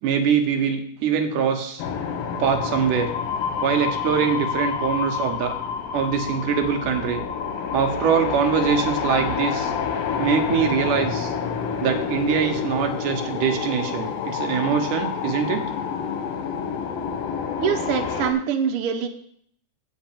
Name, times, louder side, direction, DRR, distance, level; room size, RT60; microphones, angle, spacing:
voice 1, 0.0-1.8 2.4-3.1 3.6-5.5 5.9-7.2 7.7-9.7 10.2-11.3 11.8-15.6, right 7 dB, 90° right, 5 dB, 2.6 m, -23 dB
sound 1, 1.8-18.3, left 7 dB, 65° left, 2.0 m, -28 dB
voice 2, 17.6-19.1, right 7 dB, 60° right, 4 dB, 1.6 m, -24 dB
8.6 x 5.2 x 7.4 m, 0.64 s
omnidirectional pair, 3.5 m